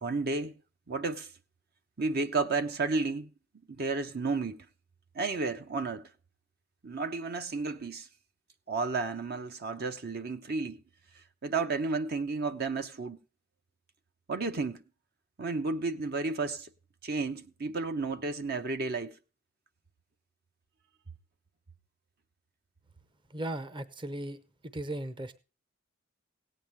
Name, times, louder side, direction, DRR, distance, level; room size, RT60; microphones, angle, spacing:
voice 1, 0.0-0.5 0.9-1.3 2.0-3.3 3.7-4.6 5.1-6.1 6.8-8.1 8.7-10.8 11.4-13.2 14.3-14.8 15.4-16.7 17.0-19.2, right 3 dB, 50° right, 0.9 m, -32 dB
voice 2, 23.3-24.4 24.6-25.4, right 1 dB, 25° right, 0.8 m, -37 dB
17.5 x 9.1 x 3.3 m
head